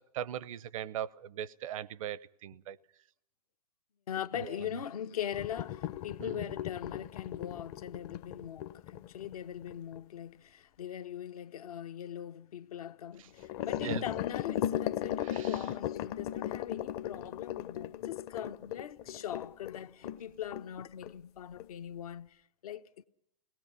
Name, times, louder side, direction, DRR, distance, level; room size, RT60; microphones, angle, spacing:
voice 1, 0.0-2.8 4.3-4.8 6.2-6.5 13.2-13.3 13.8-14.1 15.2-15.7, right 10 dB, 55° right, 0.7 m, -40 dB
voice 2, 4.1-23.0, left 10 dB, 65° left, 1.0 m, -41 dB
sound 1, 5.3-10.0 13.4-20.2 20.5-20.7 21.0-21.1 21.6-21.7, left 11 dB, 40° left, 0.8 m, -37 dB
29.0 x 19.0 x 5.1 m
hypercardioid pair, 115°, 20 cm